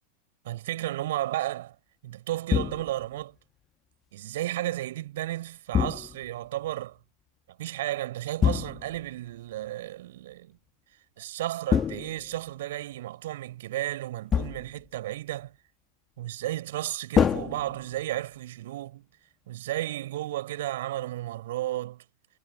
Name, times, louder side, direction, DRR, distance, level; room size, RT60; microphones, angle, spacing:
voice 1, 0.4-1.7 2.0-3.4 4.1-7.0 7.6-10.6 11.2-15.5 16.2-19.1 19.5-22.0, right 14 dB, 55° right, 6.3 m, -33 dB
sound 1, 2.5-3.1 5.7-6.4 8.4-9.1 11.7-12.6 14.3-14.9 17.1-18.2, left 8 dB, 25° left, 2.5 m, -27 dB
figure-of-eight pair, 90°, 0 cm